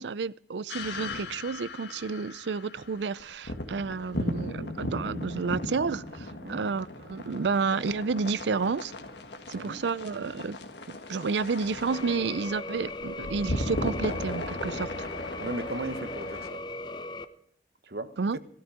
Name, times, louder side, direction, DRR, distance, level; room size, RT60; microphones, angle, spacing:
voice 1, 0.0-8.9 9.5-10.6 10.9-14.9 18.2-18.4, right 4 dB, 80° right, 0.5 m, -30 dB
sound 1, 0.7-16.5, left 1 dB, 80° left, 1.7 m, -37 dB
sound 2, 11.9-17.3, left 2 dB, 25° left, 0.7 m, -38 dB
voice 2, 15.4-16.6 17.8-18.4, right 2 dB, 65° right, 1.2 m, -36 dB
17.0 x 12.5 x 5.0 m
head